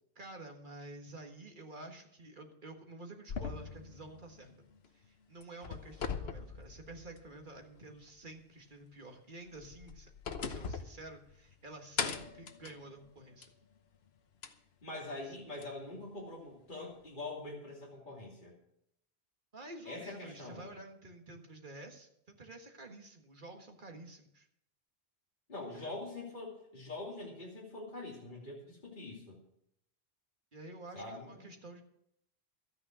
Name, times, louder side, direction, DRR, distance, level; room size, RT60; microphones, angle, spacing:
voice 1, 0.2-4.5 4.9-10.1 10.4-13.5 15.3-15.4 19.5-24.5 25.7-26.0 30.5-31.8, right 2 dB, 50° right, 3 dB, 1.8 m, -50 dB
sound 1, 3.3-5.1 5.4-7.4 7.8-7.9 9.5-11.6 12.0-13.6 14.4-14.5 15.6-15.7, left 6 dB, 75° left, 1.2 m, -41 dB
voice 2, 14.8-18.5 19.9-20.8 25.5-29.4 30.9-31.5, left 2 dB, 50° left, -3 dB, 3.0 m, -44 dB
13.0 x 9.4 x 6.2 m, 0.74 s
omnidirectional pair, 1.1 m